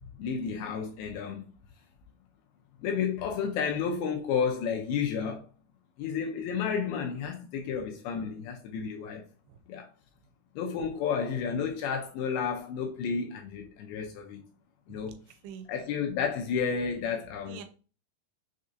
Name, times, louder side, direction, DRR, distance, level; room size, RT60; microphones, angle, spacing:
voice 1, 0.2-1.5 2.8-5.5 6.0-9.2 9.7-9.9 10.6-14.5 14.9-15.2 15.7-17.6, left 6 dB, 80° left, 2.3 m, -31 dB
voice 2, 14.9-15.7 17.4-17.6, right 7 dB, 90° right, 2.7 m, -46 dB
6.2 x 2.6 x 2.5 m
omnidirectional pair, 4.8 m